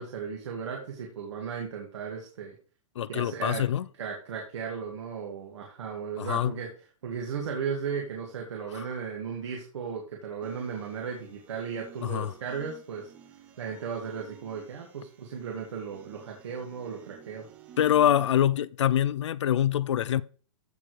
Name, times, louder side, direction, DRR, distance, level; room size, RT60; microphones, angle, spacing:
voice 1, 0.0-2.5 3.1-3.6 4.0-6.7 7.0-13.1 13.6-17.5, right 6 dB, 60° right, 2.1 m, -36 dB
voice 2, 3.0-3.9 6.2-6.6 8.7-8.9 12.0-12.3 17.8-20.2, left 10 dB, 60° left, 0.4 m, -25 dB
sound 1, 10.4-18.4, right 8 dB, 10° right, 0.5 m, -53 dB
14.5 x 4.8 x 3.3 m
hypercardioid pair, 175°, 17 cm